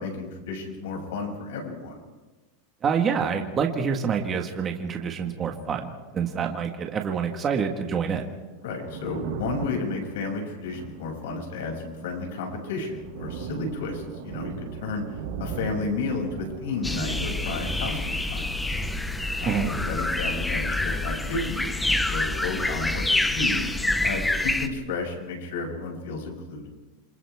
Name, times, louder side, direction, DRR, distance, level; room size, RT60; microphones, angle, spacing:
voice 1, 0.0-2.0 8.6-18.5 19.4-23.6 24.0-26.7, left 3 dB, 75° left, 1 dB, 7.2 m, -32 dB
voice 2, 2.8-8.3 19.4-19.7, right 6 dB, 20° right, 3 dB, 1.7 m, -27 dB
Thunder, 8.6-23.1 23.3-24.6, right 6 dB, 65° right, 6.6 m, -40 dB
sound 1, 16.8-24.7, left 2 dB, 5° left, 0.9 m, -27 dB
28.0 x 26.0 x 3.7 m, 1.2 s
supercardioid pair, 160°, 0 cm